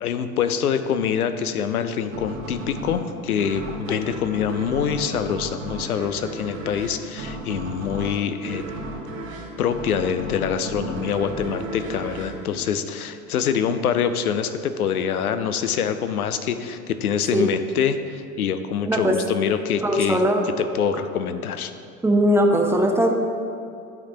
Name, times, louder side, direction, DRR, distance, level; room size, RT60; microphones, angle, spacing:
voice 1, 0.0-8.6 9.6-20.2 20.7-21.7, left 8 dB, 85° left, 10 dB, 0.6 m, -25 dB
sound 1, 2.1-13.4, right 2 dB, 70° right, 1.3 m, -34 dB
voice 2, 18.8-19.2 19.8-20.4 22.0-23.1, equal, 5° right, 2 dB, 0.8 m, -19 dB
10.5 x 4.8 x 3.8 m, 2.5 s
figure-of-eight pair, 75°, 43 cm